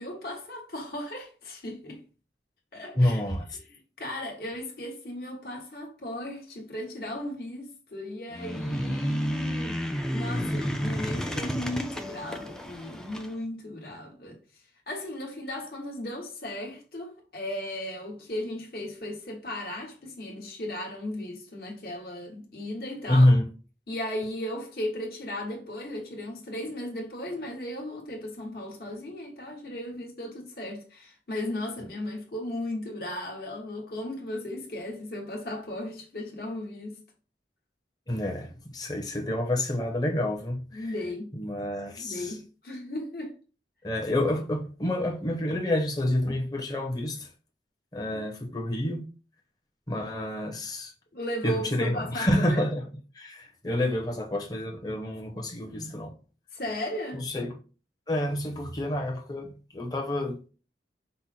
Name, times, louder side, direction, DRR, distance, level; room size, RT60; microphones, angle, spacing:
voice 1, 0.0-2.0 2.7-3.2 3.7-14.4 14.9-23.3 23.9-37.0 40.7-41.4 42.0-43.3 51.1-52.6 56.5-57.3, left 1 dB, 60° left, 1.5 m, -36 dB
voice 2, 2.9-3.5 23.1-23.5 38.1-40.9 41.3-42.3 43.8-47.3 47.9-49.1 49.9-50.9 51.4-52.9 53.1-56.1 57.1-57.6 58.1-60.5, left 1 dB, 20° left, 0.9 m, -28 dB
sound 1, 8.3-13.3, equal, 5° left, 0.4 m, -31 dB
5.4 x 2.1 x 4.3 m
head